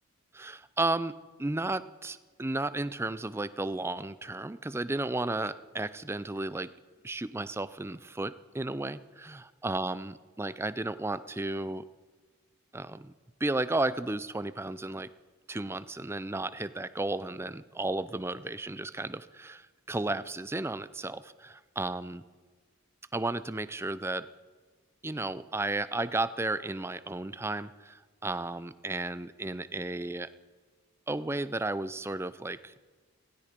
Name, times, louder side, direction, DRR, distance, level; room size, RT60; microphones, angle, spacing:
voice 1, 0.3-1.1 1.4-6.7 7.0-11.8 12.7-13.1 13.4-15.1 15.5-22.2 23.1-24.3 25.0-30.3 31.1-32.7, right 2 dB, 10° right, 14 dB, 0.4 m, -33 dB
16.5 x 16.0 x 5.2 m, 1.4 s
head